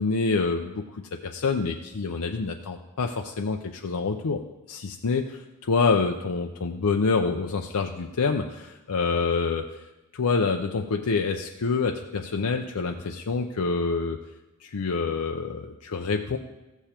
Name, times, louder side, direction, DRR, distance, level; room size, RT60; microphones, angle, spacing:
voice 1, 0.0-9.6 10.1-14.2 14.6-16.4, left 4 dB, 80° left, 3 dB, 0.6 m, -27 dB
15.0 x 7.0 x 4.4 m, 1.1 s
head